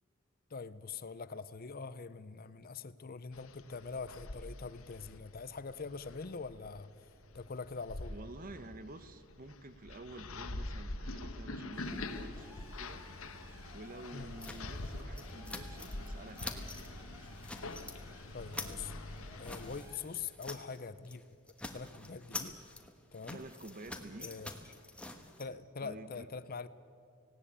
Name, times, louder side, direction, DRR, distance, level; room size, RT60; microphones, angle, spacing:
voice 1, 0.5-6.9 7.3-8.1 14.1-14.3 18.3-18.9 19.4-21.2 21.7-22.6 23.1-23.4 24.2-24.5 25.4-26.7, left 5 dB, 40° left, 15 dB, 0.6 m, -43 dB
sound 1, 3.3-19.8, left 2 dB, 70° left, 1.2 m, -45 dB
voice 2, 8.1-13.1 13.7-17.0 23.3-24.4 25.8-26.3, right 2 dB, 40° right, 12 dB, 1.0 m, -50 dB
sound 2, 11.7-20.0, equal, 10° right, 4.9 m, -58 dB
sound 3, 14.4-16.1 16.3-16.9 17.2-18.0 18.3-20.8 21.0-21.2 21.5-25.4, left 2 dB, 5° left, 1.2 m, -46 dB
18.5 x 17.5 x 8.6 m, 2.3 s
head